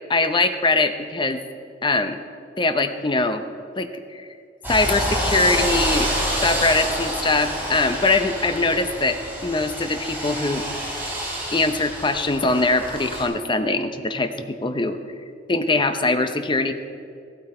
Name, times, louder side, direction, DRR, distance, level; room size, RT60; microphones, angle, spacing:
voice 1, 0.1-1.4 1.8-2.2 2.6-3.4 3.8-4.3 4.7-6.1 6.4-10.6 11.5-15.0 15.5-16.7, left 3 dB, 25° left, 8 dB, 0.7 m, -22 dB
sound 1, 4.6-13.2, equal, 10° right, 3.7 m, -27 dB
15.0 x 12.5 x 4.3 m, 2.4 s
head